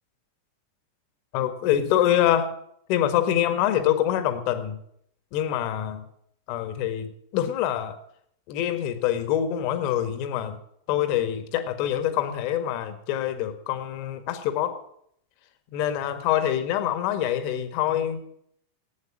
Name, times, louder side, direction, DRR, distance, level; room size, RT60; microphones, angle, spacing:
voice 1, 1.3-2.5 2.9-4.8 5.3-6.0 6.5-8.0 8.5-10.6 10.9-14.8 15.7-18.4, left 11 dB, 45° left, 10 dB, 1.7 m, -25 dB
11.5 x 9.3 x 8.6 m, 0.70 s
figure-of-eight pair, 90°, 0 cm